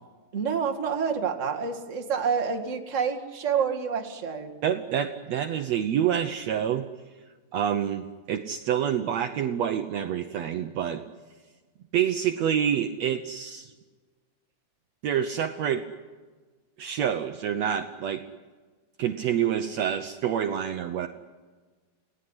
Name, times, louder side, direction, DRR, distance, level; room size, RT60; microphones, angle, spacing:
voice 1, 0.3-4.5, right 6 dB, 30° right, 4 dB, 1.5 m, -28 dB
voice 2, 4.6-6.9 7.5-11.0 11.9-13.7 15.0-15.8 16.8-18.2 19.0-21.1, right 9 dB, 80° right, 7 dB, 1.5 m, -27 dB
29.5 x 18.5 x 9.8 m, 1.4 s
omnidirectional pair, 4.4 m